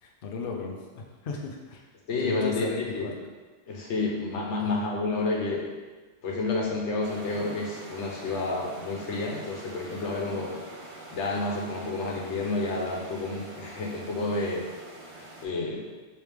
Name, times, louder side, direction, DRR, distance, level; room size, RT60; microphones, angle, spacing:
voice 1, 0.0-1.8 2.2-3.2 4.6-4.8, left 4 dB, 60° left, 0 dB, 0.7 m, -36 dB
voice 2, 2.1-3.1 3.7-5.7 6.2-10.5 11.1-14.7 15.4-15.8, left 3 dB, 85° left, -2 dB, 1.1 m, -30 dB
sound 1, 7.0-15.5, right 2 dB, 40° right, 0.5 m, -45 dB
3.3 x 3.2 x 3.3 m, 1.3 s
omnidirectional pair, 1.2 m